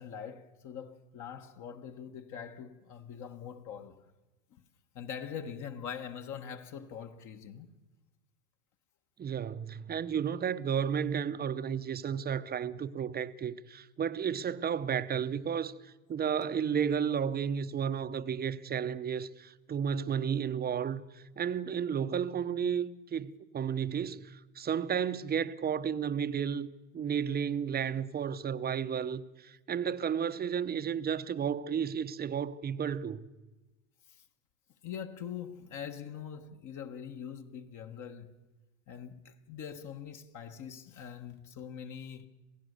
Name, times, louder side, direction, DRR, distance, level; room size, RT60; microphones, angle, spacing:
voice 1, 0.0-4.0 4.9-7.7 34.1-34.2 34.8-38.3 38.9-42.3, left 8 dB, 45° left, 1.5 m, -43 dB
voice 2, 9.2-26.7 26.9-33.3, right 7 dB, 20° right, 0.8 m, -33 dB
27.5 x 16.5 x 6.7 m
hypercardioid pair, 105°, 44 cm